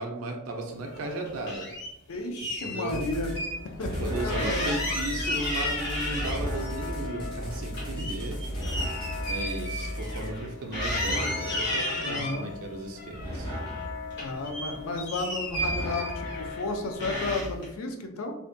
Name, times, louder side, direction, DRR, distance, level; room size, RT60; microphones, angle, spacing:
voice 1, 0.0-1.7 2.4-3.1 3.8-8.4 9.3-13.5, right 2 dB, 75° right, 2 dB, 0.4 m, -35 dB
sound 1, 0.8-1.9 2.3-3.6 3.9-4.0 4.3-6.7 7.0-10.5 10.7-12.4 13.0-13.8 14.1-16.6 17.0-17.7, left 1 dB, 50° left, 0.9 m, -33 dB
voice 2, 2.1-3.3 3.8-4.6 12.0-12.5 14.1-18.3, left 2 dB, 75° left, 4 dB, 0.4 m, -33 dB
sound 2, 2.9-3.4 3.8-10.3, right 1 dB, 20° left, 0.6 m, -36 dB
sound 3, 3.2-17.2, left 2 dB, 90° left, 1.1 m, -38 dB
2.4 x 2.1 x 2.5 m, 0.84 s
head